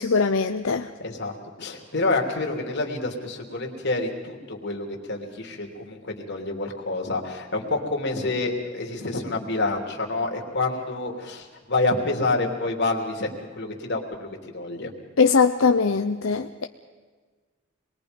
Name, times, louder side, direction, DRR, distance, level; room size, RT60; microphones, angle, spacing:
voice 1, 0.0-0.9 15.2-16.6, left 5 dB, 80° left, 6 dB, 0.7 m, -21 dB
voice 2, 1.0-14.9, left 2 dB, 60° left, 1 dB, 3.1 m, -28 dB
27.0 x 21.0 x 5.3 m, 1.4 s
head